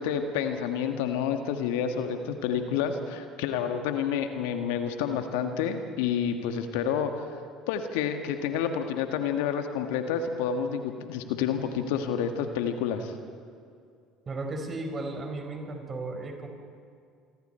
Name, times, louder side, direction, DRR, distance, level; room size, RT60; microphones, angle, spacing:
voice 1, 0.0-7.2 7.7-13.1, left 7 dB, 70° left, 7 dB, 1.7 m, -29 dB
voice 2, 14.3-16.5, right 2 dB, 35° right, 4 dB, 4.6 m, -35 dB
28.0 x 24.5 x 4.5 m, 2.3 s
hypercardioid pair, 65°, 0 cm